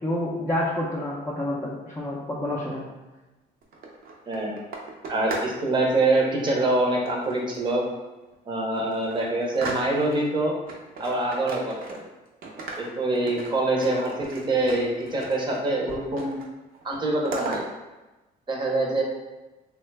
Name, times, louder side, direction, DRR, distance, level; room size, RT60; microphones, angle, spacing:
voice 1, 0.0-2.8, left 1 dB, 15° left, -7 dB, 0.5 m, -28 dB
sound 1, 3.6-5.6 5.9-6.3 7.1-7.9 8.3-8.4 8.7-10.3 10.7-12.2 12.4-15.6 15.9-16.5 16.7-17.6, right 3 dB, 60° right, 0.6 m, -38 dB
voice 2, 5.1-7.8 8.5-10.5 11.0-12.0 12.8-16.3 16.8-17.6 18.5-19.0, right 2 dB, 30° right, -1 dB, 0.7 m, -25 dB
3.1 x 2.2 x 3.2 m, 1.1 s
cardioid pair, 110°, 17 cm